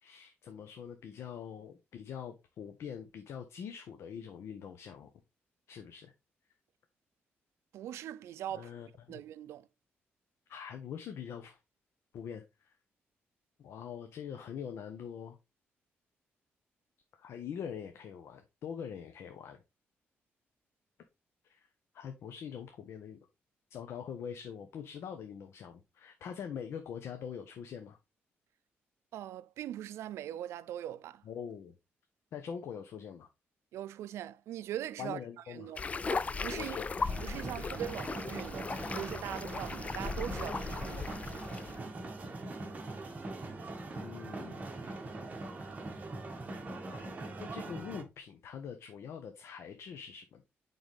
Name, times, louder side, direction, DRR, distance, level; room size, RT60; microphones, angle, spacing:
voice 1, 0.0-5.1 5.7-6.1 8.5-9.2 10.5-11.6 12.1-12.7 13.6-15.4 17.2-19.6 21.4-21.7 21.9-23.2 23.7-28.0 31.2-31.7 32.3-33.3 35.0-35.7 36.5-36.9 44.0-45.0 45.6-45.9 46.8-47.1 47.4-50.4, left 7 dB, 75° left, 1.0 m, -44 dB
voice 2, 7.7-8.7 9.1-9.7 29.1-31.2 33.7-35.2 35.5-36.8 37.2-41.1, right 12 dB, 90° right, 0.4 m, -41 dB
sound 1, 35.8-41.8, left 4 dB, 30° left, 0.4 m, -37 dB
sound 2, 37.0-48.0, right 2 dB, 35° right, 1.7 m, -42 dB
9.2 x 4.0 x 3.3 m
cardioid pair, 100°, 5 cm